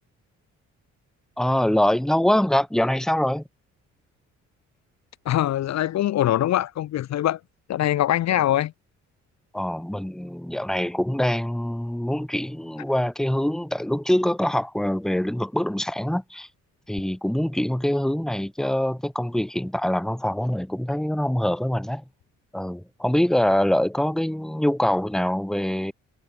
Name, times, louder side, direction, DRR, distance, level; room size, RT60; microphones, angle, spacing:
voice 1, 1.4-3.4 9.5-16.5 16.9-22.0 22.5-25.9, left 1 dB, ahead, 1.3 m, -24 dB
voice 2, 5.3-7.4 7.7-8.7, left 12 dB, 60° left, 0.8 m, -23 dB
cardioid pair, 90°, 30 cm